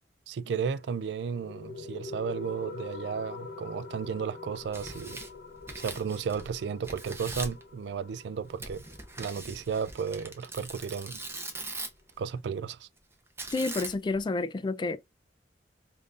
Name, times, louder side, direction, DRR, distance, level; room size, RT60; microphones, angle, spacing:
voice 1, 0.3-5.2 5.8-8.8 9.2-11.2 12.2-12.9, right 6 dB, 75° right, 0.3 m, -34 dB
sound 1, 0.7-11.7, left 4 dB, 60° left, 0.9 m, -46 dB
Tearing, 4.5-6.6 6.8-7.6 8.6-12.1 13.4-14.2, right 2 dB, 15° right, 0.7 m, -41 dB
voice 2, 13.5-15.0, left 3 dB, 25° left, 0.3 m, -29 dB
5.2 x 2.6 x 2.4 m
head